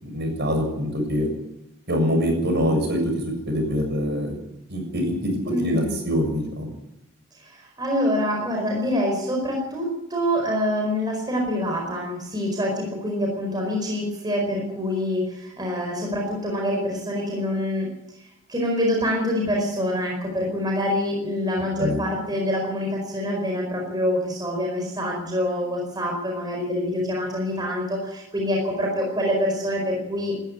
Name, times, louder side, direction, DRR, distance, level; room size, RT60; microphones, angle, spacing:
voice 1, 0.0-1.3 1.9-3.1 3.5-4.4 4.7-5.2 5.4-6.7 21.8-22.0, equal, 50° right, 4 dB, 7.0 m, -24 dB
voice 2, 5.5-5.9 7.4-17.9 18.5-30.3, left 1 dB, 20° right, 0 dB, 4.6 m, -26 dB
20.0 x 13.5 x 9.8 m, 0.86 s
head